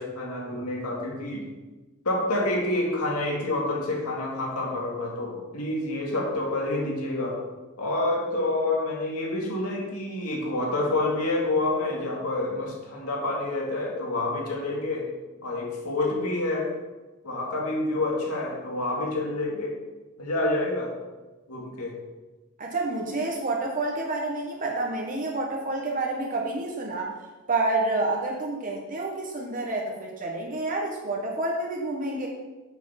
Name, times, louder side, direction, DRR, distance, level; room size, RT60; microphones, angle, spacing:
voice 1, 0.0-1.5 2.0-7.4 7.8-15.1 15.4-16.7 17.2-19.8 20.2-20.9 21.5-22.0, left 2 dB, 80° left, -2 dB, 2.3 m, -28 dB
voice 2, 22.6-27.1 27.5-32.3, right 2 dB, 40° right, 0 dB, 1.2 m, -29 dB
7.1 x 7.0 x 5.8 m, 1.2 s
head